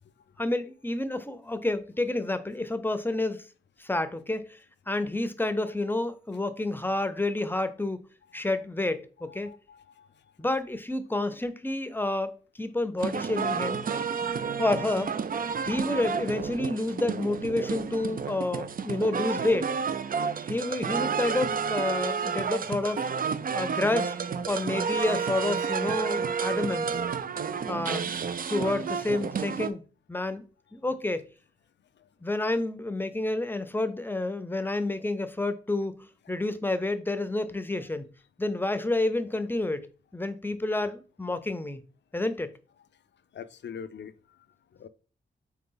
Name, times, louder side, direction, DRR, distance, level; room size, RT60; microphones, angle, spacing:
voice 1, 0.4-3.5 3.8-4.6 4.9-8.0 8.3-9.5 10.4-14.1 14.6-15.2 15.6-19.7 20.5-23.1 23.5-24.2 24.5-27.0 27.7-28.1 28.5-29.8 30.1-30.4 30.7-31.2 32.2-38.1 38.4-39.9 40.1-41.8 42.1-42.6, left 2 dB, 10° left, 0.7 m, -29 dB
voice 2, 9.4-10.1 43.3-44.1 44.8-44.9, left 7 dB, 65° left, 0.5 m, -42 dB
sound 1, 13.0-29.7, right 6 dB, 45° right, 0.5 m, -31 dB
3.9 x 3.4 x 3.9 m
cardioid pair, 50°, 20 cm